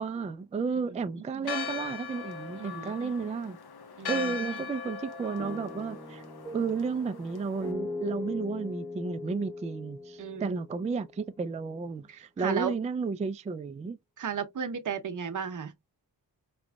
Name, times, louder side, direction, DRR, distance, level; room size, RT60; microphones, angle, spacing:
voice 1, 0.0-3.6 4.1-6.2 6.5-14.0, right 5 dB, 20° right, 0.3 m, -32 dB
voice 2, 0.9-1.5 2.6-3.1 4.0-4.6 10.2-10.6 12.1-12.7 14.2-15.7, right 7 dB, 45° right, 0.8 m, -35 dB
Church bell, 1.4-7.7, left 6 dB, 60° left, 1.0 m, -39 dB
sound 1, 5.4-11.4, left 2 dB, 5° left, 0.7 m, -40 dB
5.0 x 3.1 x 2.3 m
wide cardioid pair, 100°, 42 cm